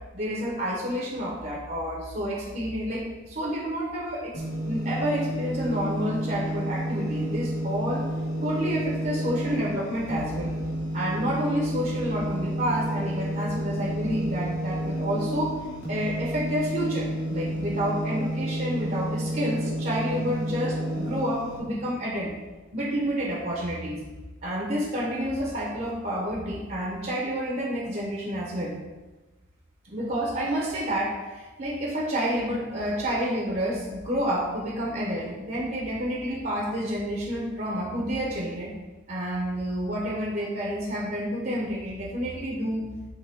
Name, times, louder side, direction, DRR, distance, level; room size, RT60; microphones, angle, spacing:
voice 1, 0.1-8.0 8.4-10.6 10.9-15.5 15.9-22.3 22.7-24.0 24.4-28.8 29.9-38.8 39.1-42.9, equal, 45° right, -3 dB, 1.0 m, -29 dB
sound 1, 4.3-21.6, equal, 85° left, 2.1 m, -30 dB
8.2 x 3.5 x 3.6 m, 1.2 s
head